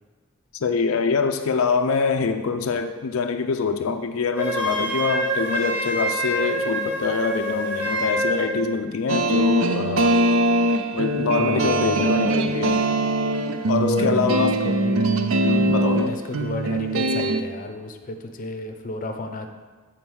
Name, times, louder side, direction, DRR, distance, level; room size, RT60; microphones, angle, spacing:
voice 1, 0.5-10.2 10.9-12.8 13.7-14.6 15.4-16.1, left 5 dB, 85° left, 7 dB, 0.5 m, -24 dB
Wind instrument woodwind instrument, 4.4-8.6, right 1 dB, 10° right, 1.4 m, -26 dB
sound 1, 9.1-17.4, right 2 dB, 80° right, 0.5 m, -22 dB
voice 2, 11.4-12.2 13.7-15.1 15.6-19.5, left 3 dB, 40° left, 5 dB, 0.6 m, -32 dB
7.2 x 4.2 x 6.1 m, 1.4 s
head